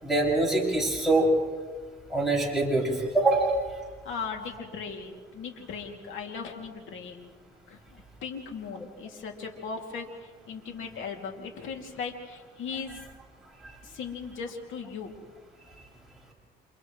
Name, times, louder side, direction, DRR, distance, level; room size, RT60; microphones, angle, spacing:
voice 1, 0.0-1.3 2.1-3.6, right 2 dB, ahead, -4 dB, 6.8 m, -24 dB
voice 2, 4.0-7.3 7.7-7.8 8.2-13.0 13.8-15.1, left 5 dB, 80° left, 2 dB, 2.7 m, -38 dB
29.5 x 27.5 x 3.2 m, 1.5 s
cardioid pair, 90°, 20 cm